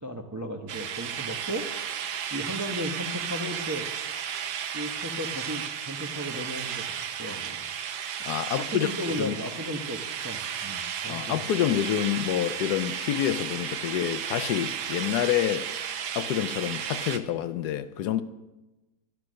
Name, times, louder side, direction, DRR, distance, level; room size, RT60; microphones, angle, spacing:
voice 1, 0.0-1.7 2.3-3.9 4.7-7.6 8.6-11.4, equal, 15° right, 0.7 m, -35 dB
sound 1, 0.7-17.2, right 8 dB, 70° right, 1.3 m, -34 dB
voice 2, 8.2-8.9 9.2-9.4 11.1-15.7 16.1-18.2, left 11 dB, 75° left, 1.1 m, -27 dB
12.5 x 12.0 x 6.3 m
omnidirectional pair, 1.8 m